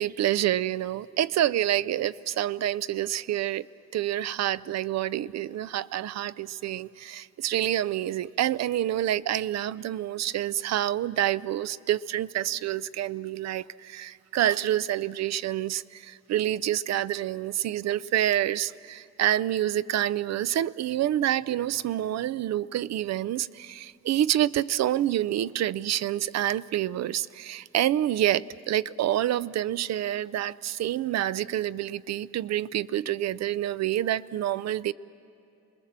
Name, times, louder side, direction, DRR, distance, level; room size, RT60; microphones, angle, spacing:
voice 1, 0.0-3.6 3.9-34.9, right 12 dB, 60° right, 18 dB, 0.5 m, -27 dB
28.0 x 20.5 x 7.4 m, 2.7 s
cardioid pair, 90°, 30 cm